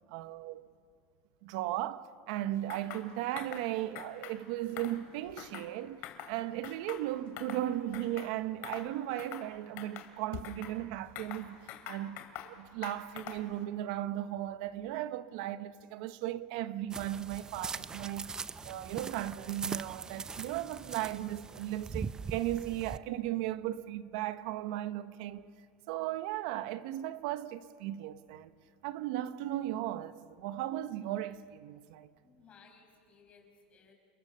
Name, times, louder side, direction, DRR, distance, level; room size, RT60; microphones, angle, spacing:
voice 1, 0.1-0.7 1.4-11.6 11.9-18.3 18.6-25.5 25.9-28.5 28.8-32.1, right 13 dB, 70° right, 0.9 m, -36 dB
sound 1, 2.7-3.1 3.4-3.7 3.9-4.4 4.7-5.7 6.0-6.3 6.6-7.6 7.9-8.3 8.6-8.9 9.2-9.5 9.8-10.7 11.2-12.5 12.8-13.5, left 11 dB, 60° left, 2.6 m, -44 dB
sound 2, 16.9-23.0, right 5 dB, 15° right, 0.5 m, -41 dB
voice 2, 32.2-33.9, left 5 dB, 30° left, 5.6 m, -60 dB
29.5 x 22.0 x 6.7 m
supercardioid pair, 140°, 4 cm